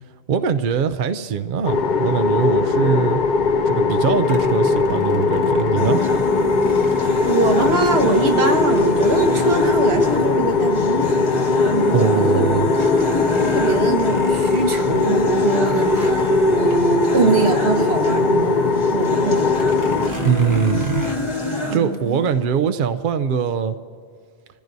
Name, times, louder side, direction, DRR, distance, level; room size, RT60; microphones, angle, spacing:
voice 1, 0.3-3.2 3.6-6.0 11.9-12.7 20.2-21.0 21.7-23.7, right 7 dB, 60° right, 9 dB, 0.7 m, -21 dB
wind drone, 1.6-20.1, left 4 dB, 55° left, 0.7 m, -20 dB
sound 1, 4.2-10.9 11.5-11.6 11.9-18.6 18.9-19.0 19.5-21.2, right 2 dB, 20° right, 1.2 m, -37 dB
sound 2, 5.8-21.8, left 1 dB, 30° left, 1.9 m, -26 dB
voice 2, 7.1-11.3 11.6-12.9 13.4-16.2 16.5-19.5 21.7-22.2, right 3 dB, 80° right, 4 dB, 1.5 m, -23 dB
26.0 x 15.5 x 2.7 m, 2.2 s
omnidirectional pair, 1.1 m